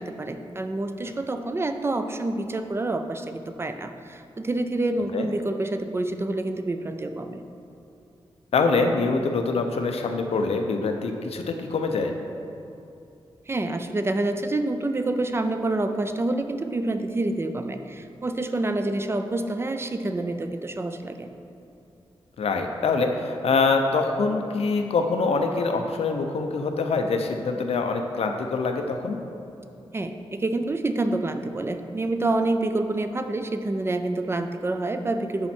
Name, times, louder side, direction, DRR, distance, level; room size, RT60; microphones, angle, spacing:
voice 1, 0.0-7.4 13.5-21.3 29.9-35.5, right 2 dB, 25° right, 8 dB, 0.4 m, -27 dB
voice 2, 8.5-12.2 22.4-29.2, left 4 dB, 90° left, 4 dB, 0.6 m, -24 dB
10.5 x 4.3 x 4.3 m, 2.6 s
wide cardioid pair, 140°, 10 cm